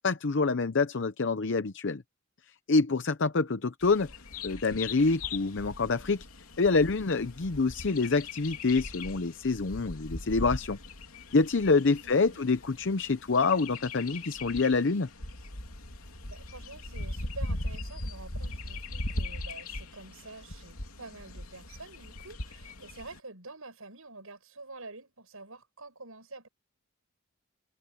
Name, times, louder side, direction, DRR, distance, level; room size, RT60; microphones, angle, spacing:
voice 1, 0.0-2.0 2.7-4.1 4.4-6.3 6.6-10.8 11.3-15.1, left 4 dB, 55° left, 0.7 m, -26 dB
Bird vocalization bird call bird song, 3.8-23.2, left 2 dB, 85° left, 3.2 m, -40 dB
voice 2, 12.0-12.5 16.3-26.5, right 3 dB, 75° right, 7.7 m, -47 dB
head